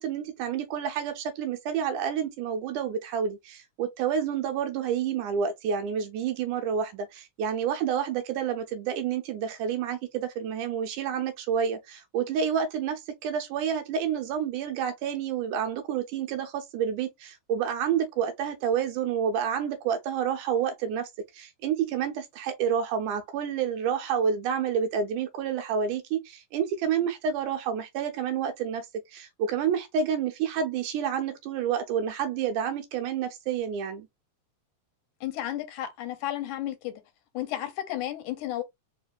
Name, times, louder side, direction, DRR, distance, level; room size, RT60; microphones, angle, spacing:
voice 1, 0.0-34.1, right 7 dB, 85° right, 2.3 m, -29 dB
voice 2, 35.2-37.0 37.3-38.6, left 13 dB, 85° left, 2.1 m, -33 dB
4.8 x 2.9 x 2.4 m
omnidirectional pair, 3.4 m